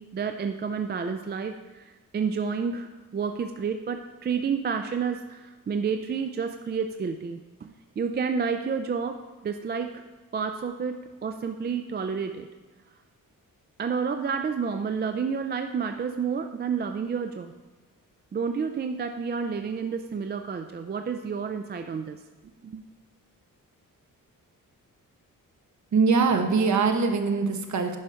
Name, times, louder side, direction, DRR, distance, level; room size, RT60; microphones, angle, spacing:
voice 1, 0.0-10.0 10.3-12.5 13.8-17.5 18.3-22.2 22.6-22.9, right 6 dB, 30° right, 7 dB, 0.4 m, -30 dB
voice 2, 25.9-28.0, right 4 dB, 55° right, 5 dB, 1.1 m, -22 dB
10.5 x 5.0 x 5.6 m, 1.3 s
wide cardioid pair, 135°, 34 cm